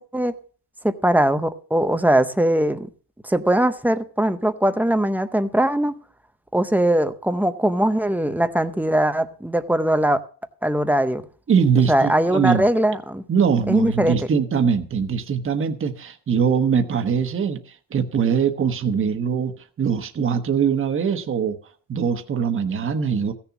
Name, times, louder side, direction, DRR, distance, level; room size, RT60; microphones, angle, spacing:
voice 1, 0.8-2.9 3.2-6.0 6.5-10.2 10.6-11.3 11.9-13.2 13.7-14.2, right 1 dB, 5° right, 0.6 m, -20 dB
voice 2, 11.5-12.6 13.3-21.6 21.9-23.3, right 6 dB, 30° right, 1.2 m, -22 dB
15.5 x 7.1 x 5.9 m
cardioid pair, 140°, 45 cm